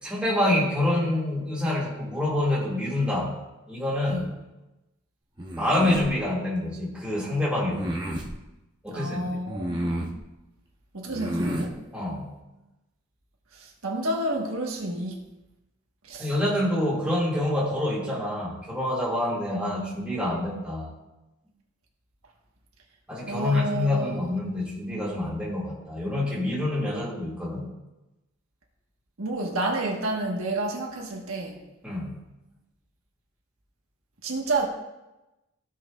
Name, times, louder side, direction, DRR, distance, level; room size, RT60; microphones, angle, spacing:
voice 1, 0.0-3.3 3.7-4.3 5.5-8.0 8.8-9.3 11.9-12.3 16.2-20.9 23.1-27.6 31.8-32.2, left 1 dB, 5° right, -6 dB, 2.3 m, -27 dB
sound 1, 5.4-6.1 7.7-8.3 9.5-10.2 11.1-11.7, right 1 dB, 20° right, 1.0 m, -30 dB
voice 2, 8.9-10.1 10.9-11.8 13.5-15.2 16.0-16.3 23.3-24.2 29.2-31.6 34.2-34.7, right 2 dB, 80° right, 0 dB, 1.5 m, -30 dB
15.0 x 6.1 x 2.5 m, 1.0 s
head